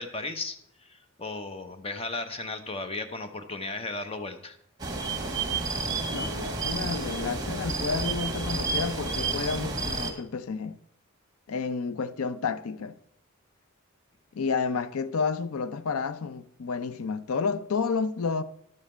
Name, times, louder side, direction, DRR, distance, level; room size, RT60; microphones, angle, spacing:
voice 1, 0.0-4.6 8.5-8.7, left 3 dB, 30° left, 0.8 m, -35 dB
sound 1, 4.8-10.1, right 3 dB, 20° right, 1.4 m, -30 dB
voice 2, 6.1-10.8 11.5-12.9 14.3-18.4, left 5 dB, 90° left, 0.5 m, -30 dB
11.0 x 7.3 x 4.4 m
head